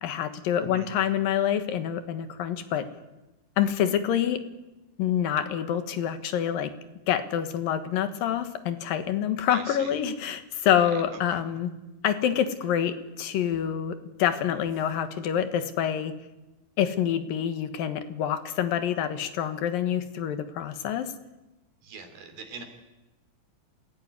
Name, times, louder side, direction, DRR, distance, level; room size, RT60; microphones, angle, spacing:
voice 1, 0.0-2.9 3.6-4.4 5.0-6.7 7.1-11.7 12.0-16.1 16.8-21.1, left 9 dB, 80° left, 9 dB, 3.1 m, -27 dB
voice 2, 0.6-0.9 9.5-9.9 10.6-11.4 21.8-22.6, right 4 dB, 90° right, 7 dB, 4.8 m, -42 dB
27.0 x 16.5 x 9.7 m, 1.0 s
omnidirectional pair, 4.1 m